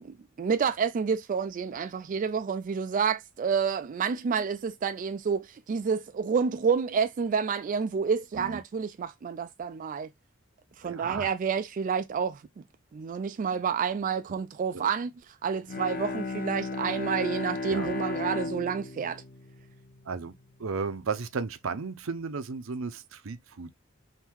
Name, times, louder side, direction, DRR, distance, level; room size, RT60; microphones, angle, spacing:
voice 1, 0.0-10.1 10.8-12.6 12.9-19.2, right 6 dB, 40° right, 0.3 m, -29 dB
voice 2, 10.8-11.3 17.7-17.9 20.1-20.3 20.6-23.7, right 4 dB, 75° right, 0.6 m, -34 dB
Bowed string instrument, 15.6-20.5, left 3 dB, 45° left, 0.8 m, -35 dB
3.7 x 2.6 x 4.5 m
head